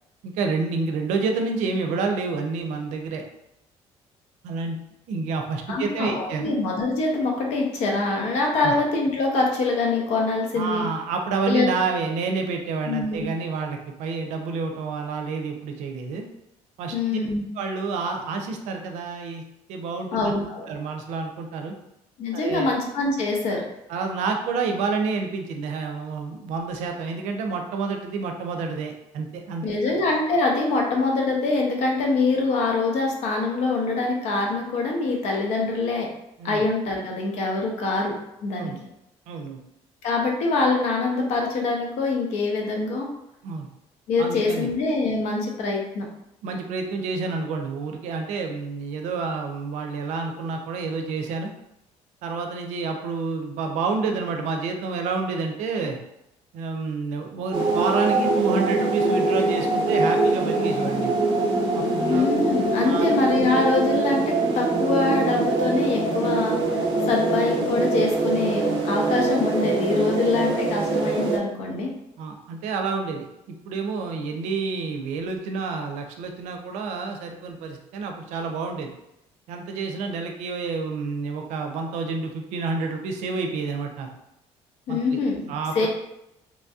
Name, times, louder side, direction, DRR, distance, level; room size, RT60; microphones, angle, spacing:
voice 1, 0.2-3.2 4.4-4.8 5.1-6.5 8.6-8.8 10.5-16.2 16.8-17.2 17.6-19.4 19.7-20.3 20.7-21.7 22.3-22.7 23.9-29.8 36.4-36.6 38.6-38.8 39.3-39.6 43.4-43.7 44.2-44.7 46.4-51.5 52.2-56.0 56.5-61.2 61.7-62.3 62.8-63.1 72.2-73.3 73.7-78.9 79.5-84.1 84.9-85.2 85.5-85.9, right 4 dB, 85° right, 3 dB, 0.5 m, -29 dB
voice 2, 5.7-10.8 11.5-11.7 12.9-13.3 16.9-17.4 20.1-20.7 22.2-23.6 29.6-36.1 36.4-38.2 38.4-38.7 40.0-43.1 44.1-46.1 62.1-71.9 84.9-85.9, left 3 dB, 75° left, 0 dB, 0.7 m, -24 dB
sound 1, 57.5-71.4, right 2 dB, 45° right, 0.6 m, -23 dB
3.0 x 2.7 x 2.3 m, 0.84 s
cardioid pair, 175°, 12 cm